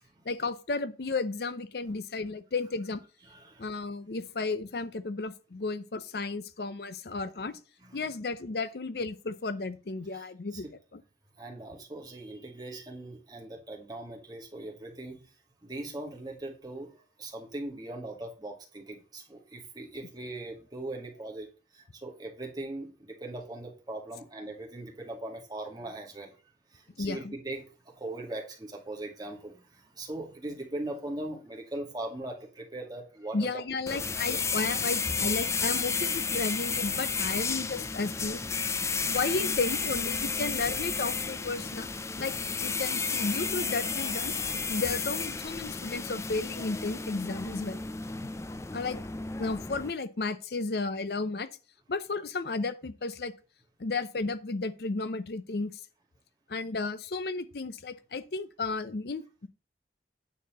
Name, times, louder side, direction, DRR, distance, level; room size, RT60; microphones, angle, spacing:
voice 1, 0.3-3.0 3.6-7.6 7.9-10.7 10.9-11.0 27.0-27.3 33.3-38.4 39.1-41.9 42.2-42.3 42.6-44.3 44.7-47.8 48.7-49.0 49.4-51.5 51.9-53.3 53.8-55.7 56.5-59.2, left 3 dB, 60° left, 0.6 m, -33 dB
voice 2, 3.3-3.8 7.8-8.1 10.1-10.6 11.4-15.3 15.6-26.3 26.7-33.6 33.9-34.0 34.2-34.4 38.8-39.2, right 2 dB, 25° right, 2.1 m, -40 dB
sound 1, 33.9-49.9, left 5 dB, 15° left, 0.4 m, -32 dB
9.2 x 4.2 x 6.7 m
head